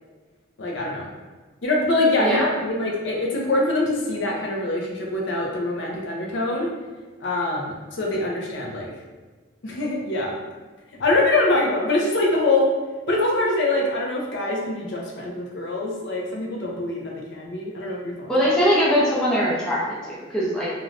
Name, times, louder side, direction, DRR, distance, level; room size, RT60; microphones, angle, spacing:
voice 1, 0.6-1.1 1.6-6.7 7.2-8.9 9.6-10.4 11.0-12.7 13.1-18.3, left 2 dB, 60° left, -1 dB, 0.5 m, -24 dB
voice 2, 18.3-20.7, equal, 5° left, -7 dB, 0.5 m, -21 dB
2.5 x 2.2 x 3.2 m, 1.4 s
head